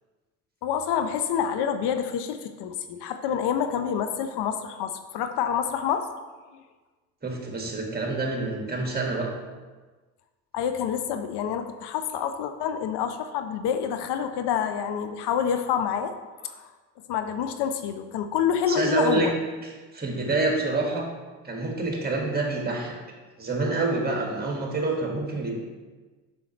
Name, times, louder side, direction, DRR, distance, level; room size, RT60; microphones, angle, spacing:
voice 1, 0.6-6.1 10.5-16.1 16.4-16.7 17.1-19.3, left 8 dB, 65° left, 8 dB, 0.6 m, -27 dB
voice 2, 7.2-9.3 18.7-19.3 19.9-21.1 21.4-23.0 23.4-25.5, right 3 dB, 20° right, 0 dB, 1.9 m, -27 dB
7.0 x 6.2 x 3.2 m, 1.3 s
supercardioid pair, 75°, 44 cm